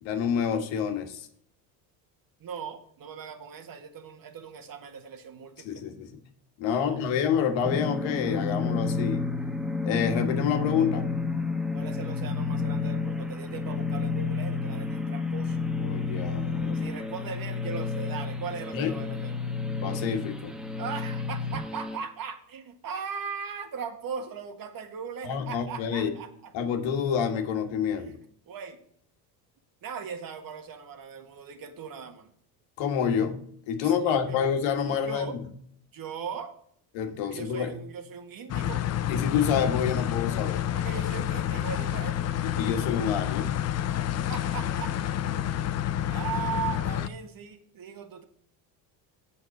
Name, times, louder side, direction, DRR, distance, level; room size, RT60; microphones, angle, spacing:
voice 1, 0.0-1.3 5.6-6.2 6.6-9.2 9.8-11.0 15.8-16.9 18.7-18.9 19.8-20.6 25.2-26.1 26.5-28.1 32.8-33.4 33.7-35.4 36.9-37.7 39.1-40.6 42.4-43.7, left 7 dB, 70° left, 6 dB, 1.7 m, -28 dB
voice 2, 2.4-5.8 6.6-7.0 11.7-15.6 16.7-19.6 20.8-26.5 27.9-28.2 28.5-28.8 29.8-32.3 33.8-34.5 34.8-35.4 35.9-36.5 37.3-38.8 40.7-42.3 44.3-44.9 45.4-45.6 46.1-48.2, right 6 dB, 45° right, 7 dB, 1.7 m, -39 dB
sound 1, 7.6-22.0, left 4 dB, ahead, 1.3 m, -30 dB
sound 2, 38.5-47.1, left 11 dB, 35° left, 0.6 m, -29 dB
7.6 x 5.8 x 6.5 m, 0.63 s
supercardioid pair, 90°, 47 cm